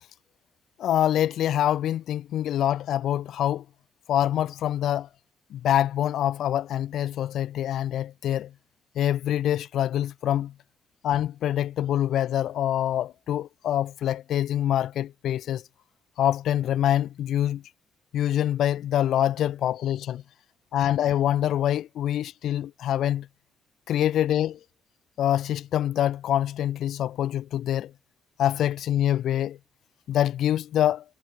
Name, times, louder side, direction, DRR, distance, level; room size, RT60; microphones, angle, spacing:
voice 1, 0.8-3.6 4.1-5.1 5.5-8.5 9.0-10.5 11.0-15.6 16.2-17.6 18.1-20.2 20.7-23.3 23.9-24.6 25.2-27.9 28.4-29.6 30.1-31.0, left 11 dB, 75° left, 0.4 m, -25 dB
cardioid pair, 90°, 0 cm